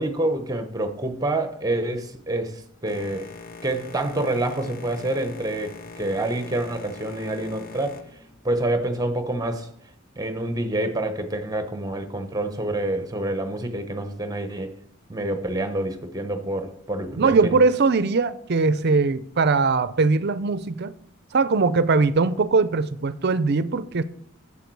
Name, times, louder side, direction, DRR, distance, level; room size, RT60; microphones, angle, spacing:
voice 1, 0.0-3.3 3.6-8.0 8.4-9.7 10.2-14.7 15.1-17.6, right 1 dB, 20° right, 0.9 m, -27 dB
Boat Water vehicle, 2.9-9.2, left 3 dB, 45° left, 0.8 m, -42 dB
voice 2, 17.2-20.9 21.3-24.0, right 4 dB, 50° right, 0.5 m, -21 dB
8.2 x 7.4 x 4.7 m
head